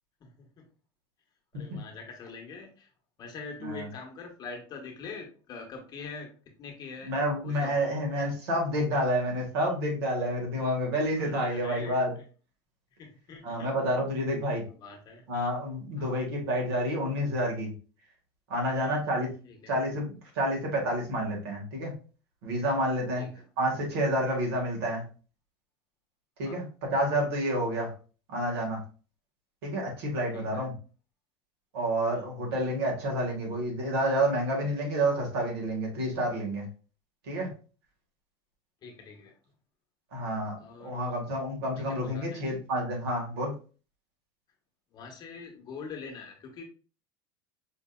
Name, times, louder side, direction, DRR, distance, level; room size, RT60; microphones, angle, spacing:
voice 1, 0.2-0.7 1.5-2.9 3.2-6.3 6.6-7.1 7.4-7.8 11.2-12.0 12.9-13.7 14.8-15.2 16.0-16.2 19.5-19.8 23.2-23.4 26.4-26.6 30.3-30.6 32.1-32.3 38.8-39.3 40.6-41.2 41.7-42.6 44.9-46.6, left 4 dB, 30° left, 2 dB, 1.0 m, -44 dB
voice 2, 7.0-12.2 13.4-14.6 15.3-17.7 18.5-19.3 19.7-22.0 22.4-23.3 23.6-25.0 26.4-27.9 28.3-28.8 29.6-30.7 31.7-36.7 37.3-37.5 40.1-43.5, equal, 85° right, 0 dB, 1.6 m, -29 dB
5.0 x 2.6 x 2.3 m, 0.38 s
supercardioid pair, 140°, 13 cm